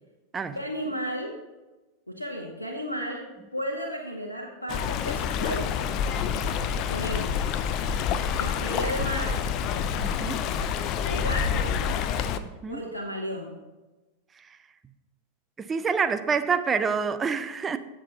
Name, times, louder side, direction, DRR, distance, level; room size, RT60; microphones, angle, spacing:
voice 1, 0.5-1.4 2.1-5.9 6.9-7.4 8.4-9.4 11.0-11.8 12.7-13.6, equal, 80° left, 0 dB, 1.0 m, -33 dB
Stream, 4.7-12.4, left 7 dB, 40° left, 0.5 m, -27 dB
voice 2, 10.0-10.4 12.6-12.8 15.6-17.8, right 5 dB, 20° right, 10 dB, 0.6 m, -27 dB
15.5 x 6.1 x 2.9 m, 1.1 s
figure-of-eight pair, 90°, 0 cm